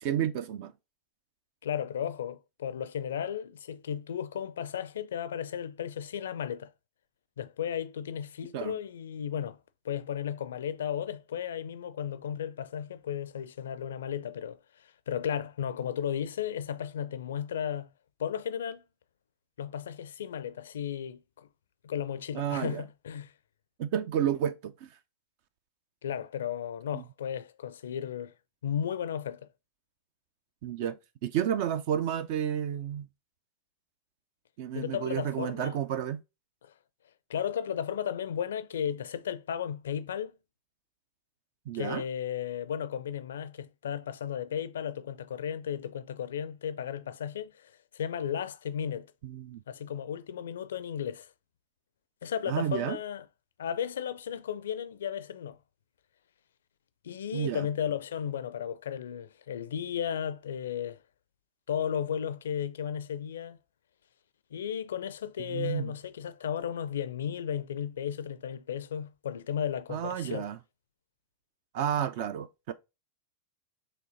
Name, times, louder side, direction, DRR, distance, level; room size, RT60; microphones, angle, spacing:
voice 1, 0.0-0.7 8.5-8.8 22.3-22.8 23.8-24.9 26.9-27.0 30.6-33.1 34.6-36.2 41.7-42.0 49.2-49.6 52.5-53.0 57.3-57.7 65.4-65.9 69.9-70.6 71.7-72.7, right 9 dB, 50° right, 0.4 m, -31 dB
voice 2, 1.6-6.7 7.4-9.6 9.8-17.9 18.2-18.8 19.6-21.5 21.8-23.3 26.0-28.3 28.6-29.5 34.7-35.8 36.6-36.7 37.3-40.3 41.7-49.1 49.7-51.3 52.2-53.2 53.6-55.6 57.0-61.0 61.7-63.6 64.5-70.5, left 9 dB, 70° left, 0.4 m, -34 dB
5.1 x 3.2 x 2.6 m
figure-of-eight pair, 90°, 0 cm